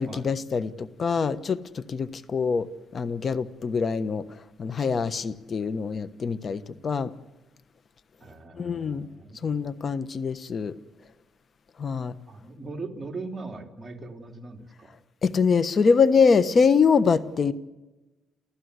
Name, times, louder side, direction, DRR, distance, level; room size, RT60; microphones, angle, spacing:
voice 1, 0.0-2.7 2.9-4.2 4.6-7.1 8.6-9.1 9.4-10.7 11.8-12.1 15.2-17.5, left 5 dB, 45° left, 1.1 m, -24 dB
voice 2, 8.2-9.7 12.3-14.9, right 3 dB, 25° right, 3.1 m, -40 dB
29.0 x 14.5 x 8.2 m
cardioid pair, 90°, 0 cm